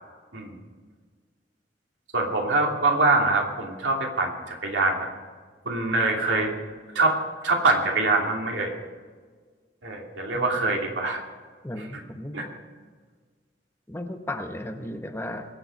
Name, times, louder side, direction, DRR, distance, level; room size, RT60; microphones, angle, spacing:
voice 1, 2.1-5.1 5.6-6.5 6.9-7.2 7.4-8.8 9.8-11.2 11.9-12.0 12.3-12.4, right 2 dB, 90° right, 0 dB, 2.8 m, -24 dB
voice 2, 11.6-12.5 13.9-15.5, left 1 dB, 15° left, 5 dB, 1.0 m, -35 dB
23.0 x 7.8 x 5.4 m, 1.5 s
head